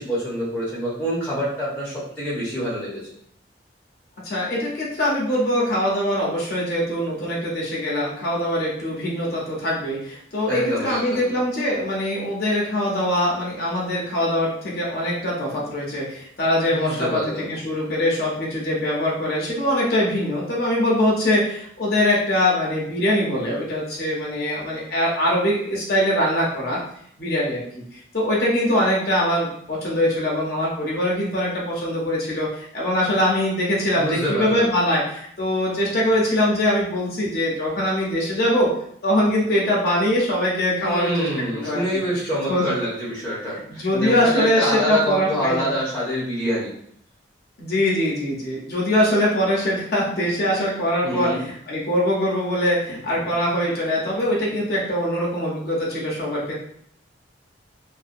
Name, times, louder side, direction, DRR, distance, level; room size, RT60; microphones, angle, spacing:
voice 1, 0.0-3.1 10.5-11.3 16.7-17.5 34.0-34.7 40.8-46.7 51.0-51.4, equal, 10° left, -9 dB, 0.6 m, -26 dB
voice 2, 4.2-26.8 27.2-38.7 39.0-42.0 42.5-42.6 43.7-45.7 47.6-56.5, left 1 dB, 55° left, -4 dB, 0.6 m, -22 dB
2.5 x 2.1 x 2.4 m, 0.67 s
head